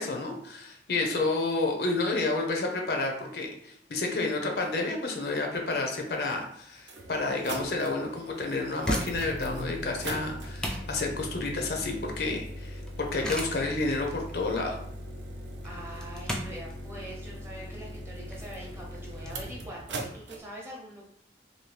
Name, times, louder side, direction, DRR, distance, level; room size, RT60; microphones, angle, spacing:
voice 1, 0.0-14.8, left 3 dB, 60° left, 2 dB, 0.6 m, -30 dB
sound 1, 6.1-6.2 6.8-20.4, right 1 dB, 80° right, 0.5 m, -40 dB
sound 2, 8.7-19.3, equal, 5° left, 0.3 m, -38 dB
voice 2, 15.6-21.0, right 1 dB, 15° right, -3 dB, 0.7 m, -43 dB
2.8 x 2.6 x 3.2 m, 0.71 s
head